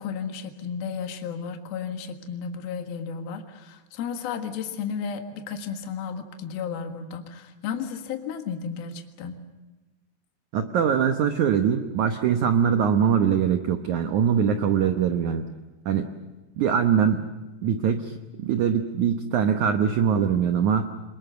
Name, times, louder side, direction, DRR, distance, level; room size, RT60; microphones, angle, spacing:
voice 1, 0.0-9.3, left 6 dB, 65° left, 5 dB, 3.3 m, -33 dB
voice 2, 10.5-15.5 15.9-16.1 16.6-17.3 17.6-20.9, right 7 dB, 75° right, 6 dB, 1.7 m, -22 dB
27.0 x 21.0 x 8.0 m, 1.1 s
omnidirectional pair, 4.9 m